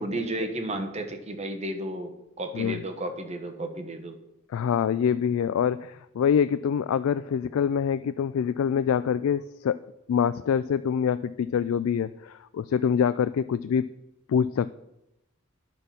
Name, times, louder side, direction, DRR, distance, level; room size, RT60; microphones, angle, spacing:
voice 1, 0.0-4.2, right 1 dB, 30° right, 6 dB, 1.1 m, -33 dB
voice 2, 4.5-9.8 10.1-13.9 14.3-14.8, left 7 dB, 80° left, 13 dB, 0.3 m, -25 dB
10.0 x 5.8 x 6.8 m, 0.88 s
head